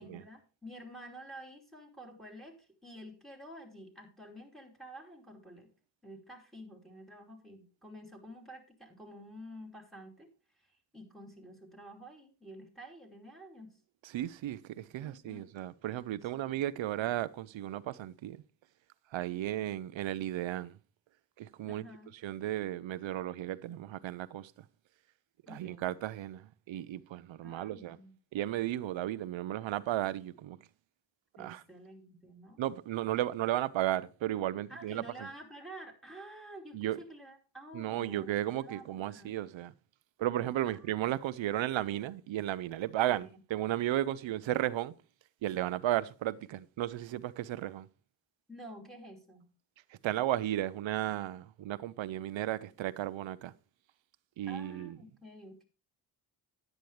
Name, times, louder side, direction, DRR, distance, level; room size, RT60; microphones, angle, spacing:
voice 1, 0.0-5.7 6.0-10.3 10.9-13.8 15.0-15.5 21.6-22.1 25.5-25.9 27.4-28.1 31.4-32.6 34.7-39.3 40.7-41.0 43.2-43.4 48.5-49.5 54.5-55.6, right 1 dB, ahead, 2.8 m, -50 dB
voice 2, 14.0-18.4 19.1-20.7 21.4-21.8 22.2-24.5 25.5-28.0 28.3-30.6 31.4-31.6 32.6-35.3 36.7-37.0 37.7-39.7 40.2-44.9 45.4-47.9 50.0-53.5 54.4-54.9, right 13 dB, 70° right, 0.7 m, -34 dB
10.5 x 8.9 x 3.3 m
cardioid pair, 55°, 47 cm